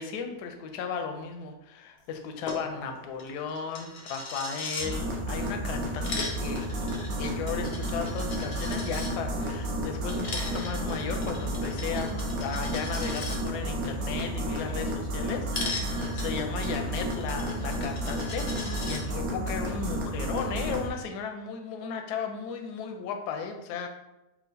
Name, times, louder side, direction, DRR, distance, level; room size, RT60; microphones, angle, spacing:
voice 1, 0.0-6.7 7.2-23.9, left 6 dB, 70° left, 5 dB, 1.0 m, -35 dB
Coin (dropping), 2.4-2.6 2.9-3.0 3.2-4.9 5.8-9.1 10.1-13.4 15.5-19.0, left 3 dB, 50° left, 0.7 m, -38 dB
sound 1, 2.5-8.1, left 3 dB, 85° left, 0.7 m, -47 dB
sound 2, 4.8-20.9, equal, 60° right, 1.0 m, -32 dB
4.5 x 2.4 x 3.9 m, 0.95 s
omnidirectional pair, 2.0 m